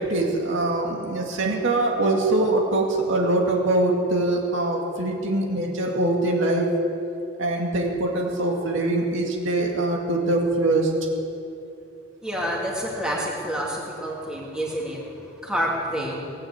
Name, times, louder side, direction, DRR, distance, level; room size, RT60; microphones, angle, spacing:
voice 1, 0.0-6.7 7.4-10.9, right 2 dB, 65° right, -1 dB, 2.2 m, -23 dB
voice 2, 12.2-15.0 15.4-16.3, equal, 5° right, -4 dB, 2.7 m, -28 dB
18.5 x 9.0 x 7.8 m, 2.7 s
head